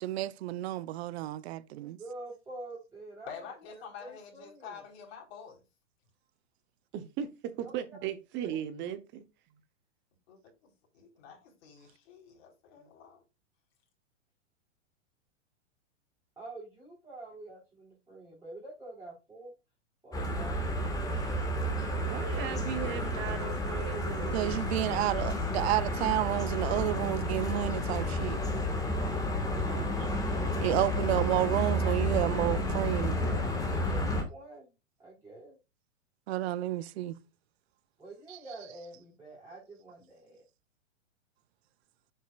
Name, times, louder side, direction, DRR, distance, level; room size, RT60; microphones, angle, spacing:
voice 1, 0.0-2.0 24.3-28.4 30.6-33.2 36.3-37.2, right 14 dB, 55° right, 0.7 m, -30 dB
voice 2, 2.0-3.5 3.7-4.8 16.4-19.5 20.0-20.6 31.2-31.3 32.5-32.6 33.2-34.7 35.0-35.6 38.0-40.4, right 2 dB, 10° right, 4.0 m, -47 dB
voice 3, 3.3-5.6 10.3-13.2 22.8-22.9, left 7 dB, 55° left, 4.1 m, -48 dB
voice 4, 6.9-9.2 22.0-24.7 29.6-30.8, right 9 dB, 30° right, 0.9 m, -38 dB
sound 1, 20.1-34.2, left 1 dB, 10° left, 1.6 m, -31 dB
7.9 x 6.5 x 2.4 m
hypercardioid pair, 130°, 38 cm